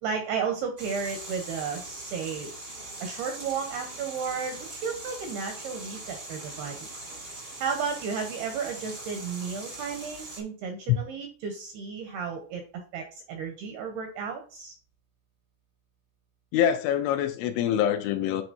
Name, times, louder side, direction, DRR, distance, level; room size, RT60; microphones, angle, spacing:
voice 1, 0.0-2.5 3.0-6.9 7.6-12.6 12.9-14.7, right 6 dB, 80° right, 2.3 m, -33 dB
sound 1, 0.8-10.4, right 2 dB, 55° right, 0.8 m, -41 dB
voice 2, 16.5-18.4, left 10 dB, 80° left, 2.9 m, -24 dB
9.5 x 4.5 x 2.6 m
omnidirectional pair, 5.6 m